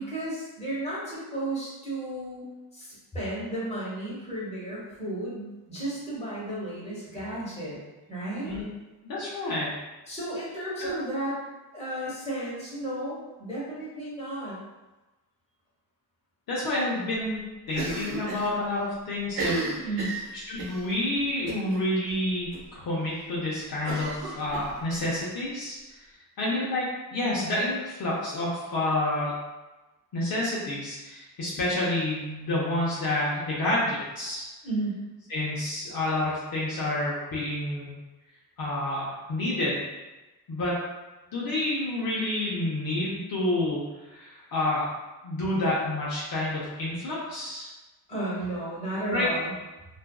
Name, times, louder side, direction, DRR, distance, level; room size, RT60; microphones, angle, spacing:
voice 1, 0.0-2.4 2.7-7.8 8.1-8.5 10.1-11.4 11.7-14.6 19.8-20.1 34.6-35.0 48.1-49.5, right 1 dB, 15° left, -8 dB, 1.2 m, -33 dB
voice 2, 9.0-9.7 10.8-10.9 16.5-17.4 17.7-19.9 20.4-26.0 26.4-29.3 30.1-34.4 35.3-37.9 38.6-39.8 40.5-40.8 41.3-44.9 45.2-47.7 49.1-49.3, left 1 dB, 60° left, -6 dB, 0.7 m, -29 dB
Cough, 17.7-18.5 18.8-18.9 19.3-20.8 21.5-21.8 22.1-22.2 22.5-22.6 23.8-25.1, right 2 dB, 70° right, 0.9 m, -33 dB
2.5 x 2.3 x 2.2 m, 1.1 s
cardioid pair, 95°, 40 cm